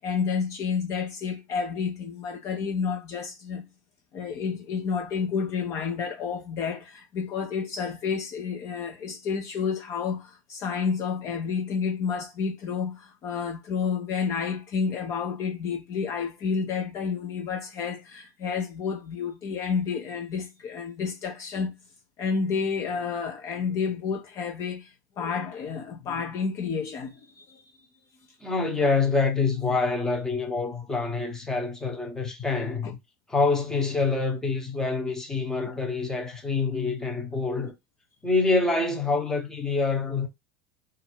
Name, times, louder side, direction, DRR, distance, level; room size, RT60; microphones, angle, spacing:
voice 1, 0.0-3.7 4.1-21.7 22.2-27.9 32.8-33.0 35.7-35.8, left 6 dB, 35° left, 0.6 m, -30 dB
voice 2, 28.4-32.9 33.3-37.7 38.2-40.3, left 3 dB, 5° left, 0.9 m, -26 dB
4.0 x 2.5 x 4.4 m
supercardioid pair, 160°, 9 cm